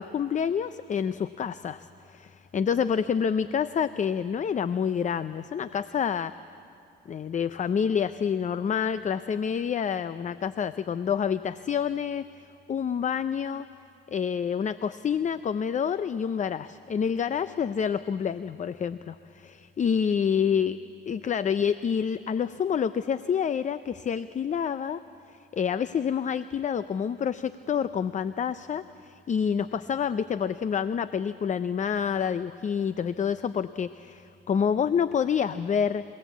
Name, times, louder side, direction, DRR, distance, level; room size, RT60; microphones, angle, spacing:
voice 1, 0.0-6.3 7.1-12.2 12.7-13.7 14.1-20.8 21.1-25.0 25.5-36.0, left 7 dB, 40° left, 14 dB, 0.5 m, -28 dB
29.5 x 17.0 x 8.3 m, 2.6 s
cardioid pair, 90°, 20 cm